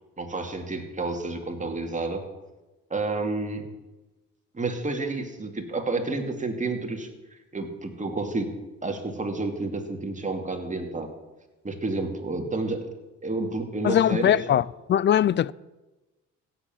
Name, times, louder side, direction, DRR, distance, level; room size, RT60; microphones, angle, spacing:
voice 1, 0.2-2.2 2.9-3.7 4.5-7.1 7.5-8.5 8.8-11.1 11.6-12.9 13.2-14.4, right 3 dB, 25° right, 2.4 m, -30 dB
voice 2, 13.8-15.5, left 10 dB, 40° left, 0.4 m, -21 dB
16.0 x 7.6 x 7.7 m
cardioid pair, 90°, 30 cm